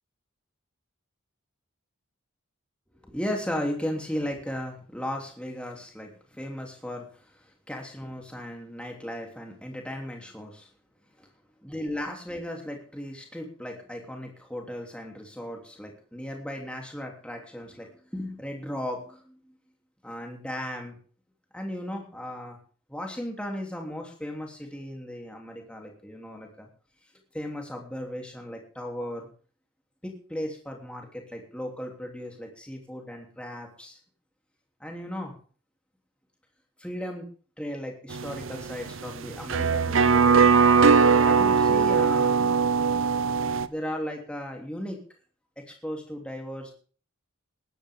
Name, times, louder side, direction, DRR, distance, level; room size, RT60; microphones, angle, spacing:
voice 1, 3.0-10.7 11.2-11.3 11.6-19.6 20.0-21.0 21.5-22.6 22.9-26.7 27.3-29.3 30.0-34.0 34.8-35.4 36.8-37.2 37.6-40.7 41.2-42.5 43.7-45.0 45.6-46.7, equal, 5° left, 1 dB, 3.1 m, -36 dB
sound 1, 38.1-43.7, right 5 dB, 65° right, 0.7 m, -20 dB
20.0 x 10.0 x 3.7 m, 0.41 s
head